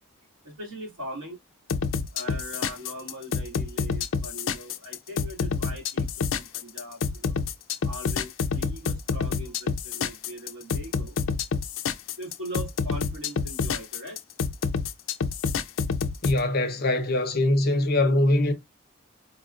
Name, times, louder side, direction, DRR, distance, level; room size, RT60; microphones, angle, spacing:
voice 1, 0.4-1.4 2.1-7.3 7.8-11.2 12.2-14.2, equal, 65° right, 2.4 m, -40 dB
sound 1, 1.7-16.4, left 5 dB, 65° left, 0.4 m, -28 dB
voice 2, 16.2-18.5, left 1 dB, 45° left, 0.8 m, -22 dB
4.1 x 2.4 x 2.4 m
head